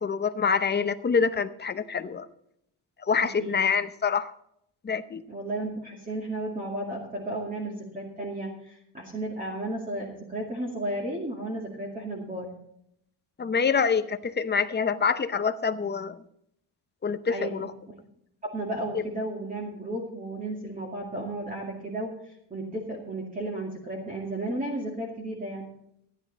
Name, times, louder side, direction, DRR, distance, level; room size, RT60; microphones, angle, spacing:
voice 1, 0.0-2.3 3.1-4.3 4.8-5.2 13.4-16.2 17.0-17.7, left 6 dB, 25° left, 11 dB, 0.7 m, -26 dB
voice 2, 3.2-3.6 5.3-12.5 17.3-17.7 18.4-22.1 22.5-25.7, right 1 dB, 20° right, -2 dB, 2.2 m, -33 dB
15.0 x 10.5 x 4.1 m, 0.74 s
cardioid pair, 135°, 41 cm